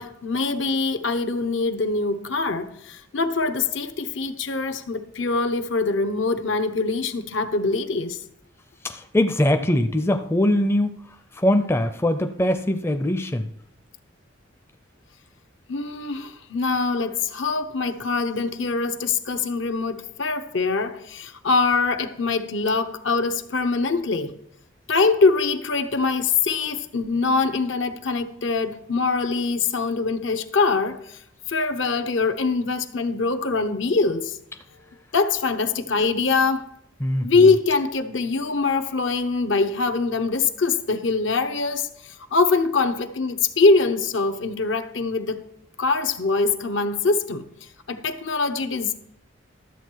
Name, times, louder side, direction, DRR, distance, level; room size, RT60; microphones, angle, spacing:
voice 1, 0.0-8.2 15.7-24.3 24.9-31.2 31.5-34.4 35.1-36.7 37.2-45.4 45.8-47.5 47.9-48.9, left 4 dB, 75° left, 0.9 m, -23 dB
voice 2, 8.8-11.0 11.3-13.5 37.0-37.3, left 1 dB, 15° left, 0.4 m, -22 dB
12.5 x 7.4 x 4.6 m
head